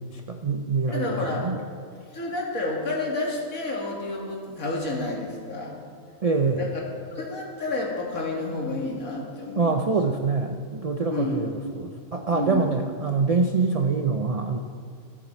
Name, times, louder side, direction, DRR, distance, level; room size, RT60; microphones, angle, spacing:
voice 1, 0.0-1.6 6.2-6.6 9.6-11.5 11.8-14.6, right 4 dB, 55° right, 5 dB, 0.4 m, -25 dB
voice 2, 0.9-1.5 2.1-5.8 6.6-6.8 7.1-9.8 11.1-11.4 12.2-12.7, left 2 dB, 75° left, -2 dB, 2.6 m, -30 dB
20.0 x 7.7 x 4.4 m, 2.1 s
omnidirectional pair, 1.5 m